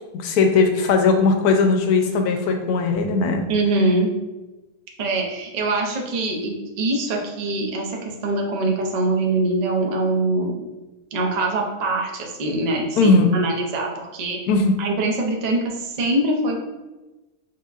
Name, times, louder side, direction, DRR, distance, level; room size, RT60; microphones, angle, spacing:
voice 1, 0.1-3.4 13.0-13.3 14.5-14.8, left 4 dB, 85° left, 5 dB, 1.1 m, -18 dB
voice 2, 3.5-4.1 5.0-10.6 11.1-14.4 14.8-16.7, right 2 dB, 55° right, -1 dB, 0.4 m, -23 dB
5.7 x 2.9 x 2.4 m, 1.1 s
omnidirectional pair, 1.6 m